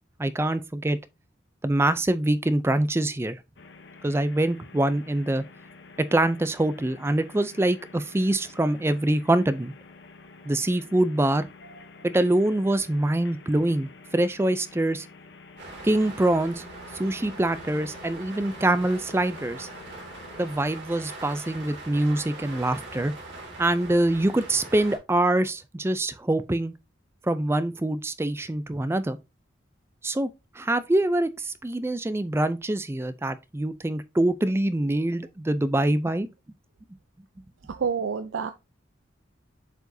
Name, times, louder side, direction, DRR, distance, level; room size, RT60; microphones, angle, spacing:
voice 1, 0.2-1.0 1.6-3.4 4.0-5.4 6.0-9.7 10.5-11.5 12.0-15.1 15.8-16.6 17.0-19.7 20.4-23.1 23.6-26.7 27.2-29.2 30.0-30.3 30.5-36.3, right 1 dB, 15° right, 0.4 m, -24 dB
sound 1, 3.6-20.5, left 3 dB, 60° left, 0.9 m, -49 dB
sound 2, 15.6-25.0, right 2 dB, 65° right, 2.7 m, -42 dB
voice 2, 37.7-38.5, right 6 dB, 80° right, 0.5 m, -28 dB
7.8 x 4.9 x 2.7 m
head